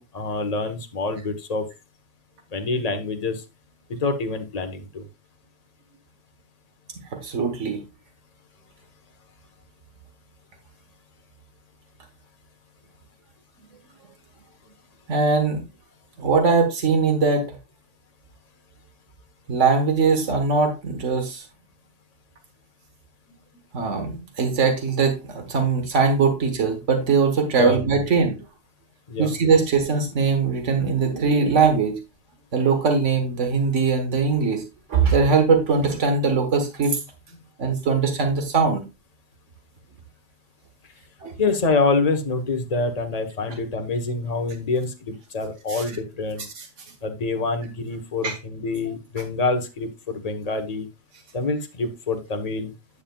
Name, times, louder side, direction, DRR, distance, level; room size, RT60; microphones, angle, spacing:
voice 1, 0.0-1.6 2.5-3.4 3.9-5.0 27.6-27.8 29.1-29.3 41.4-46.4 47.0-50.9 51.3-52.7, left 3 dB, 35° left, 6 dB, 1.1 m, -26 dB
voice 2, 7.2-7.8 15.1-15.6 16.2-17.5 19.5-21.5 23.7-28.4 29.2-32.0 32.5-34.6 34.9-37.0 37.6-38.8 41.2-41.3 45.7-45.8 46.6-46.7 48.2-48.4, right 4 dB, 85° right, 5 dB, 1.7 m, -21 dB
9.7 x 7.3 x 2.3 m, 0.25 s
omnidirectional pair, 1.2 m